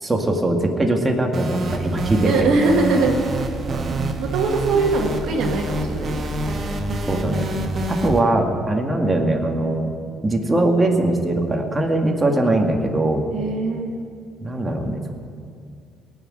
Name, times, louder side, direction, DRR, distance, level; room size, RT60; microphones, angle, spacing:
voice 1, 0.0-2.5 3.7-4.2 7.1-7.5 7.9-9.9 10.2-13.2 14.4-15.1, right 2 dB, 20° right, 2 dB, 2.3 m, -21 dB
sound 1, 1.3-8.2, right 1 dB, 45° right, 1.8 m, -26 dB
voice 2, 2.2-3.5 4.2-6.3 13.3-14.0, right 3 dB, 75° right, 2 dB, 1.6 m, -22 dB
18.5 x 6.5 x 9.1 m, 2.3 s
supercardioid pair, 65°, 0 cm